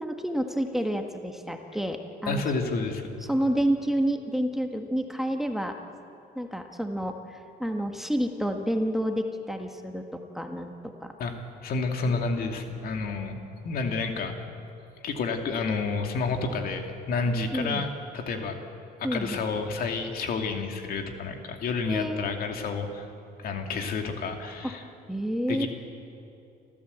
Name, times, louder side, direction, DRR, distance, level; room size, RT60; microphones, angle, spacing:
voice 1, 0.0-2.4 3.3-5.7 6.3-11.1 17.5-17.8 19.0-19.4 21.9-22.3 24.6-24.7 25.1-25.7, equal, ahead, 4 dB, 1.5 m, -29 dB
voice 2, 2.3-3.1 11.2-11.4 11.6-14.4 15.0-18.6 19.0-23.1 23.4-24.9 25.5-25.7, left 4 dB, 60° left, 4 dB, 2.5 m, -30 dB
29.5 x 14.0 x 8.2 m, 2.7 s
cardioid pair, 110°, 17 cm